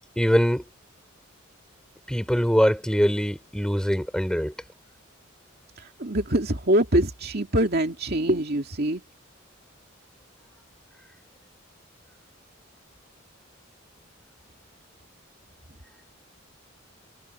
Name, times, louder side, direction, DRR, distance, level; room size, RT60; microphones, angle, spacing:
voice 1, 0.2-0.7 2.1-4.5, equal, 5° left, 6.2 m, -23 dB
voice 2, 5.8-9.0, right 1 dB, 50° right, 2.4 m, -24 dB
head